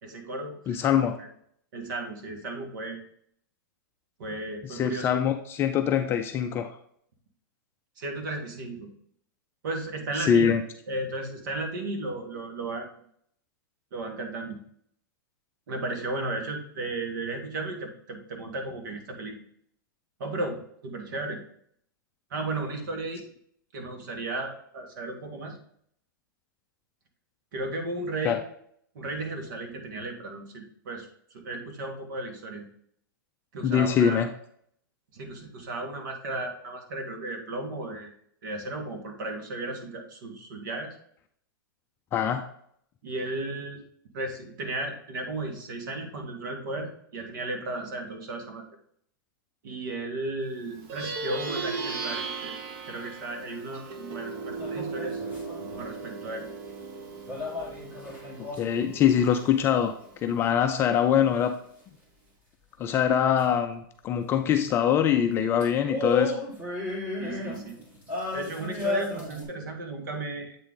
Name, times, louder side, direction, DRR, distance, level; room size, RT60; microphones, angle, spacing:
voice 1, 0.0-0.8 1.2-1.3 1.7-3.0 4.2-5.1 8.0-8.9 9.6-10.6 10.9-12.9 13.9-14.6 15.7-19.5 20.2-21.4 22.3-23.2 23.7-25.6 27.5-28.4 28.9-32.7 33.5-34.2 35.1-38.1 38.4-40.9 43.0-43.8 44.1-48.6 49.6-52.5 52.9-55.2 55.8-56.5 67.2-67.8 68.3-70.6, right 2 dB, 65° right, 4 dB, 1.8 m, -34 dB
voice 2, 0.7-1.2 4.7-6.7 10.2-10.6 28.2-28.4 33.6-34.3 42.1-42.5 58.6-60.0 60.2-61.5 62.8-66.3, left 9 dB, 20° left, 6 dB, 0.4 m, -23 dB
Plucked string instrument, 50.8-60.5, right 4 dB, 35° right, 1.0 m, -37 dB
sound 1, 54.6-55.8 57.3-58.9 63.4-63.5 65.6-69.4, left 2 dB, 15° right, 1.8 m, -33 dB
8.1 x 3.8 x 3.7 m, 0.66 s
hypercardioid pair, 150°, 12 cm